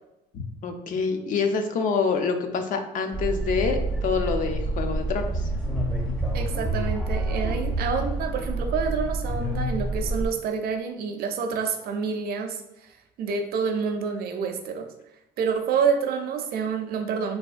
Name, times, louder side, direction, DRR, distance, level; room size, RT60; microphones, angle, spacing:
voice 1, 0.3-5.4, left 5 dB, 50° left, 6 dB, 0.4 m, -26 dB
sound 1, 3.1-10.3, right 2 dB, 5° left, 0.6 m, -28 dB
voice 2, 6.3-14.9 15.4-17.4, right 5 dB, 65° right, 5 dB, 0.5 m, -28 dB
3.4 x 2.2 x 2.4 m, 0.92 s
cardioid pair, 110°, 17 cm